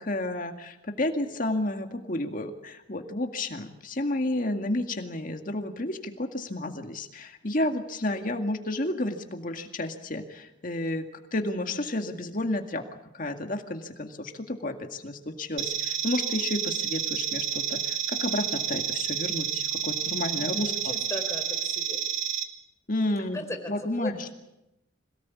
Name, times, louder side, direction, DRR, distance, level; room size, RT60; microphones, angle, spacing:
voice 1, 0.0-11.1 11.3-12.8 13.1-20.9 22.9-23.4 23.7-24.3, left 1 dB, 45° left, 5 dB, 2.0 m, -31 dB
sound 1, 15.6-22.4, right 8 dB, 90° right, 2.1 m, -30 dB
voice 2, 20.4-22.0 23.3-24.1, left 1 dB, 15° left, 3 dB, 4.3 m, -37 dB
26.0 x 18.0 x 8.5 m, 0.90 s
head